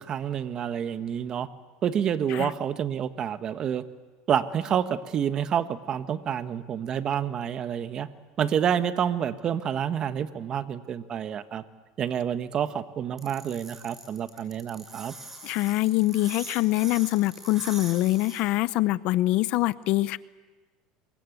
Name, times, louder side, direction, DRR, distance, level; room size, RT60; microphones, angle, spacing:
voice 1, 0.0-1.5 1.8-3.8 4.3-8.1 8.4-11.6 12.0-15.1, right 8 dB, 40° right, 11 dB, 1.3 m, -28 dB
sound 1, 13.2-18.4, right 2 dB, 15° right, 6.4 m, -42 dB
voice 2, 15.4-20.2, left 18 dB, 60° left, 17 dB, 0.7 m, -24 dB
27.5 x 23.5 x 8.1 m, 1.3 s
supercardioid pair, 115°, 2 cm